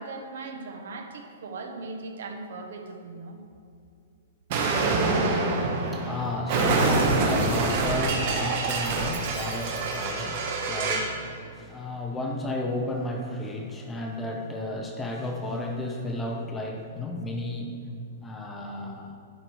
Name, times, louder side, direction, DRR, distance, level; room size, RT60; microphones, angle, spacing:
voice 1, 0.0-3.4, right 3 dB, 70° right, 4 dB, 1.3 m, -38 dB
Explosion, 4.5-11.2, right 3 dB, 35° right, 1.1 m, -26 dB
voice 2, 4.8-17.9 18.2-19.2, left 1 dB, 10° left, 2 dB, 0.6 m, -33 dB
11.0 x 6.5 x 4.6 m, 2.5 s
hypercardioid pair, 175°, 0 cm